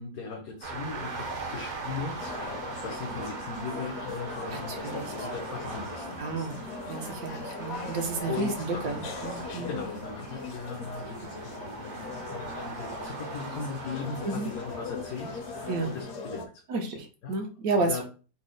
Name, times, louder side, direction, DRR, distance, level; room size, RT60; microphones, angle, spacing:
voice 1, 0.0-6.6 8.2-9.0 9.5-16.6 17.2-17.4 17.8-18.0, left 4 dB, 85° left, 0 dB, 1.2 m, -39 dB
sound 1, 0.6-16.0, right 3 dB, 50° right, 0.6 m, -40 dB
sound 2, 2.2-16.5, left 4 dB, 60° left, 0.8 m, -40 dB
voice 2, 4.5-5.1 6.2-6.6 6.9-9.8 14.2-14.5 15.7-15.9 16.7-18.0, right 3 dB, 80° right, 3 dB, 1.2 m, -31 dB
4.2 x 2.0 x 3.7 m, 0.36 s
omnidirectional pair, 1.5 m